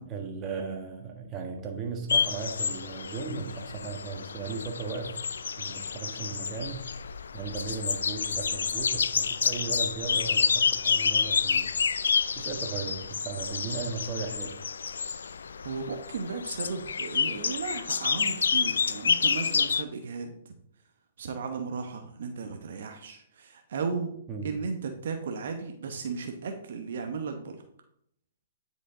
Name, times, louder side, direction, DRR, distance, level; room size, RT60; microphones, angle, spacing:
voice 1, 0.1-5.1 5.6-6.9 7.3-11.7 12.3-14.6 24.3-24.5, right 4 dB, 25° right, 2 dB, 1.6 m, -36 dB
sound 1, 2.1-19.8, left 6 dB, 80° left, 0.4 m, -29 dB
voice 2, 15.6-20.5 21.2-24.2 24.4-27.6, right 5 dB, 65° right, 5 dB, 0.9 m, -35 dB
9.8 x 5.1 x 3.8 m, 0.72 s
hypercardioid pair, 130°, 0 cm